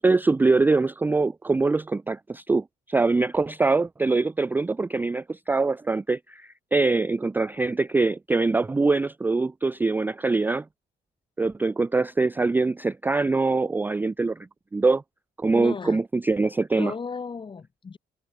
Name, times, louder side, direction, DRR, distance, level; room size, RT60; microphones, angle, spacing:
voice 1, 0.0-10.7 11.4-15.0 15.4-16.9, right 3 dB, 10° right, 0.4 m, -23 dB
voice 2, 15.5-16.0 16.7-18.0, left 5 dB, 30° left, 6.0 m, -34 dB
cardioid pair, 110°, 17 cm